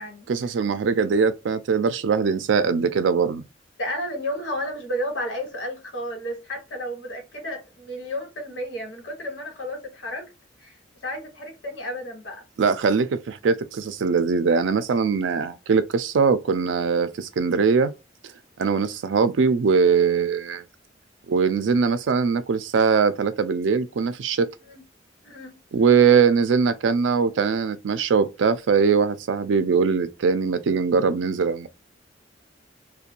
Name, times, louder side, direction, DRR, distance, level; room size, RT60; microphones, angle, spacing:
voice 1, 0.3-3.4 12.6-17.9 18.6-20.6 21.3-24.5 25.7-31.7, right 5 dB, 85° right, 0.4 m, -21 dB
voice 2, 3.8-10.3 10.6-10.7 11.0-12.4 24.6-24.8 25.2-25.6, equal, 85° left, 1.2 m, -32 dB
2.5 x 2.2 x 2.7 m
head